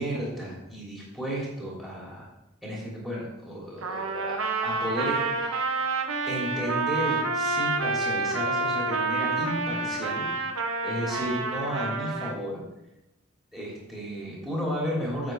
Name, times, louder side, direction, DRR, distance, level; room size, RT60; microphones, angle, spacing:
voice 1, 0.0-2.3 2.6-5.6 6.2-10.3 10.8-12.6 13.5-15.3, equal, ahead, -6 dB, 3.2 m, -33 dB
Trumpet, 3.8-12.3, right 3 dB, 90° right, 1.0 m, -28 dB
7.9 x 7.7 x 4.5 m, 0.91 s
head